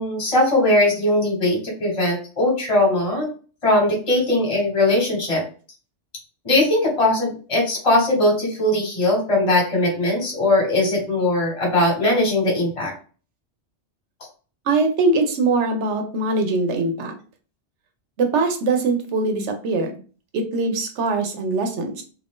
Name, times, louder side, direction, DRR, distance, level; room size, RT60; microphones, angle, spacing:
voice 1, 0.0-3.3 3.6-5.4 6.4-12.9, left 1 dB, 30° left, -1 dB, 1.2 m, -20 dB
voice 2, 14.7-17.1 18.2-19.9 20.3-22.0, right 3 dB, 85° right, 5 dB, 1.0 m, -22 dB
2.5 x 2.5 x 3.5 m, 0.38 s
omnidirectional pair, 1.2 m